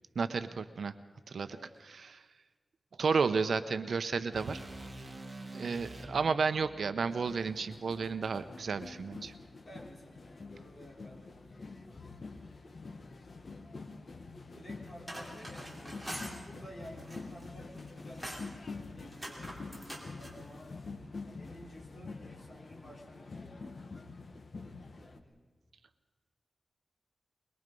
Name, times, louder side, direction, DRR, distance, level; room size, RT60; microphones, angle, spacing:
voice 1, 0.2-0.9 1.3-1.6 1.9-2.2 3.0-4.6 5.5-9.3, right 5 dB, 75° right, 11 dB, 0.8 m, -32 dB
sound 1, 4.3-8.5, right 1 dB, 20° right, 2.2 m, -48 dB
voice 2, 5.4-5.7 9.6-12.1 14.4-20.7 21.2-23.9 25.0-25.4, equal, 35° left, -2 dB, 4.0 m, -53 dB
sound 2, 7.1-25.2, left 3 dB, 50° left, 1.1 m, -47 dB
sound 3, 14.9-16.4 16.9-17.5 17.8-18.5 19.1-20.4, equal, ahead, 3.7 m, -44 dB
22.5 x 21.5 x 5.4 m, 1.5 s
wide cardioid pair, 145°, 0 cm